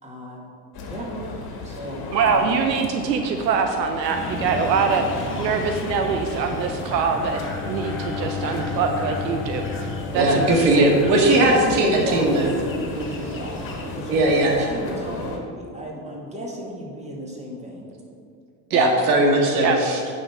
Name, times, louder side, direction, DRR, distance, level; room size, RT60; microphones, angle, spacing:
voice 1, 0.0-0.5 0.9-1.1 1.6-2.5 10.2-11.0 11.4-15.3 15.6-17.9, right 1 dB, 15° right, -2 dB, 2.1 m, -33 dB
sound 1, 0.7-15.4, left 2 dB, 45° left, 1.8 m, -35 dB
voice 2, 2.1-7.4 7.7-9.7 10.1-10.9 18.7-18.9 19.6-19.8, right 5 dB, 85° right, 5 dB, 0.7 m, -23 dB
sound 2, 4.1-14.2, left 1 dB, 25° left, 1.5 m, -35 dB
Bowed string instrument, 7.2-11.5, left 6 dB, 5° left, 0.7 m, -34 dB
voice 3, 10.1-12.5 14.1-14.6 18.7-20.0, right 1 dB, 70° right, 0 dB, 1.9 m, -19 dB
9.9 x 4.2 x 6.0 m, 2.3 s
hypercardioid pair, 75°, 49 cm